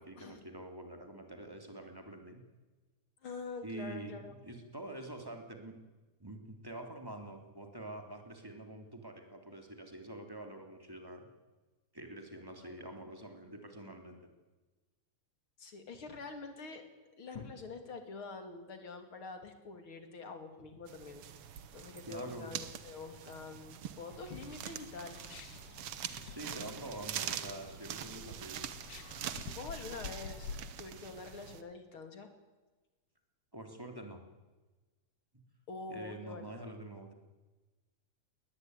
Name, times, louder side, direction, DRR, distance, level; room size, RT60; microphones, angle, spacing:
voice 1, 0.0-2.4 3.6-5.8 6.2-11.3 11.9-14.3 22.0-22.5 26.1-28.6 33.5-34.2 35.9-37.1, right 1 dB, 5° right, 4 dB, 2.8 m, -46 dB
voice 2, 3.2-4.3 12.6-12.9 15.6-16.8 17.2-21.2 21.7-25.2 29.5-30.5 30.8-32.3 35.7-36.7, left 4 dB, 35° left, 7 dB, 3.2 m, -46 dB
sound 1, 20.9-31.6, right 9 dB, 75° right, 1.3 m, -44 dB
sound 2, 24.1-30.6, left 6 dB, 55° left, 1.9 m, -49 dB
21.0 x 19.5 x 9.7 m, 1.2 s
omnidirectional pair, 4.2 m